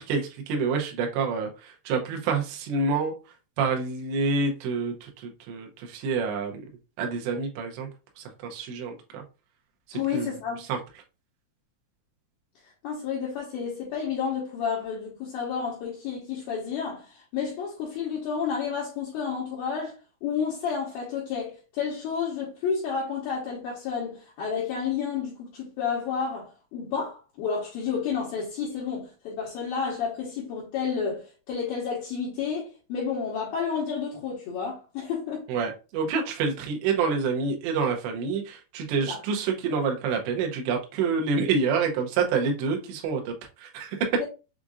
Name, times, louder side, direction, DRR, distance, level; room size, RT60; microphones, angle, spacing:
voice 1, 0.0-3.1 3.6-6.7 7.0-7.9 8.2-9.2 9.9-10.8 35.5-44.1, right 5 dB, 80° right, 3.0 m, -28 dB
voice 2, 9.9-10.7 12.8-20.0 20.2-35.5 39.0-39.2 44.2-44.3, left 6 dB, 70° left, 2.4 m, -31 dB
7.1 x 2.6 x 2.4 m
omnidirectional pair, 5.2 m